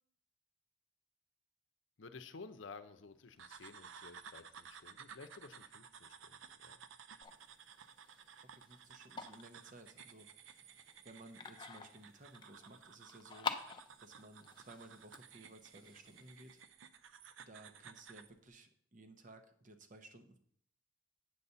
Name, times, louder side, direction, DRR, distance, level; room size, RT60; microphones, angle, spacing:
voice 1, 2.0-6.8, left 4 dB, 70° left, 9 dB, 0.7 m, -54 dB
sound 1, 3.4-18.3, right 7 dB, 80° right, 0.5 m, -56 dB
sound 2, 7.2-16.6, left 5 dB, 25° left, 0.5 m, -48 dB
voice 2, 8.5-13.5 14.0-16.6 17.5-20.4, right 2 dB, 40° right, 7 dB, 0.8 m, -57 dB
7.9 x 4.1 x 6.8 m, 0.64 s
head